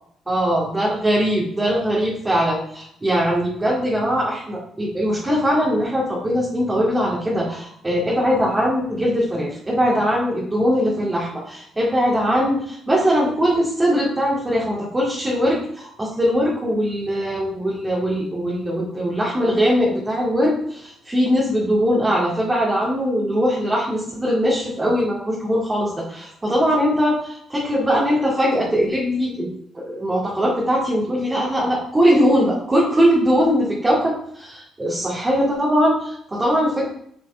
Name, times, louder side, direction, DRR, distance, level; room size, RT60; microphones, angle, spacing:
voice 1, 0.3-36.9, equal, 20° right, -6 dB, 2.1 m, -21 dB
9.2 x 4.7 x 3.5 m, 0.70 s
cardioid pair, 90°, 0 cm